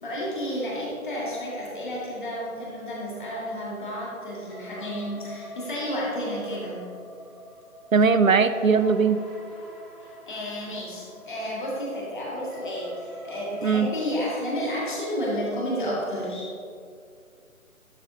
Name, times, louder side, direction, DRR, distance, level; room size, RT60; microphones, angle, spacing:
voice 1, 0.0-6.8 10.3-16.5, equal, 35° left, -5 dB, 1.9 m, -31 dB
sound 1, 4.5-14.0, left 1 dB, ahead, 1.3 m, -45 dB
voice 2, 7.9-9.2 13.6-13.9, right 5 dB, 65° right, 11 dB, 0.5 m, -19 dB
12.0 x 6.6 x 2.7 m, 2.3 s
figure-of-eight pair, 155°, 43 cm